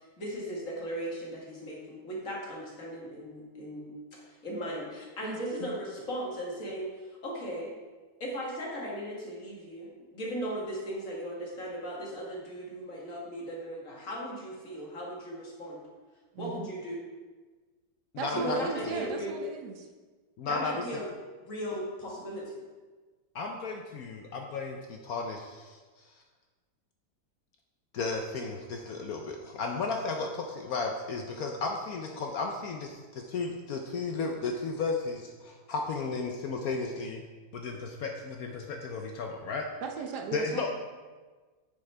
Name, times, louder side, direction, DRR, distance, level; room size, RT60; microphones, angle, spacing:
voice 1, 0.0-6.9 7.2-7.7 8.2-15.8 16.4-17.0 18.3-19.4 20.5-21.1 21.4-22.6, equal, 50° left, -3 dB, 2.0 m, -37 dB
voice 2, 5.2-5.7 16.3-16.7 18.2-19.9 39.8-40.7, right 5 dB, 70° right, 3 dB, 1.3 m, -37 dB
voice 3, 18.2-18.6 20.4-20.7 23.3-25.8 27.9-37.2 37.5-39.7 40.3-40.7, left 4 dB, 65° left, 2 dB, 1.0 m, -34 dB
9.0 x 7.1 x 3.3 m, 1.4 s
omnidirectional pair, 1.9 m